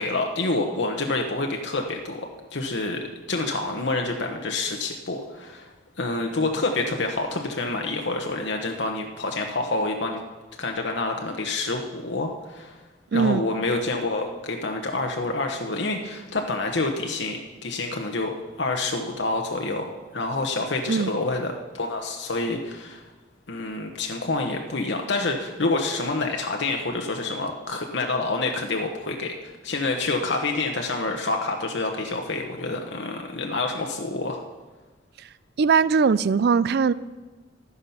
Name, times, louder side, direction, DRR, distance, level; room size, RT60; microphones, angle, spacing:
voice 1, 0.0-3.0 3.3-5.7 6.0-10.2 10.6-12.8 13.1-23.1 23.5-34.4, left 2 dB, 65° left, 1.1 m, -27 dB
voice 2, 13.1-13.4 20.9-21.1 35.2-35.3 35.6-36.9, right 5 dB, 60° right, 0.4 m, -20 dB
12.5 x 9.8 x 5.7 m
head